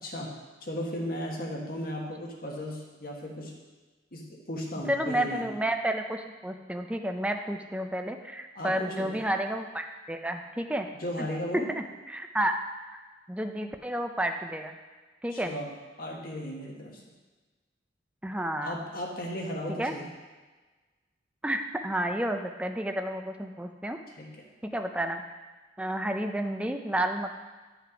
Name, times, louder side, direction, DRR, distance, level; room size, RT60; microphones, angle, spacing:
voice 1, 0.0-3.6 4.1-5.5 8.5-9.3 11.0-11.7 15.3-15.7 16.0-17.0 18.6-20.1 24.2-24.3, equal, 50° left, -1 dB, 1.6 m, -36 dB
voice 2, 4.9-10.9 11.2-11.3 11.7-12.6 12.9-13.0 13.3-14.8 15.2-15.5 18.2-18.8 19.8-19.9 21.4-24.0 24.6-25.2 25.8-27.3, right 1 dB, 5° right, 5 dB, 0.5 m, -31 dB
11.0 x 5.8 x 5.0 m, 1.3 s
head